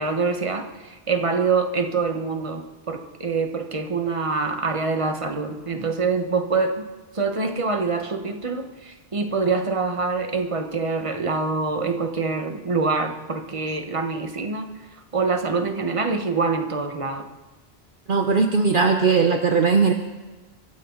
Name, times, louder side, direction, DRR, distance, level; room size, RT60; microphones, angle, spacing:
voice 1, 0.0-6.8 7.1-14.7 15.1-17.3, right 4 dB, 30° right, 5 dB, 1.3 m, -25 dB
voice 2, 18.1-19.9, right 5 dB, 55° right, 5 dB, 1.0 m, -19 dB
23.5 x 14.0 x 4.0 m, 1.2 s
omnidirectional pair, 1.1 m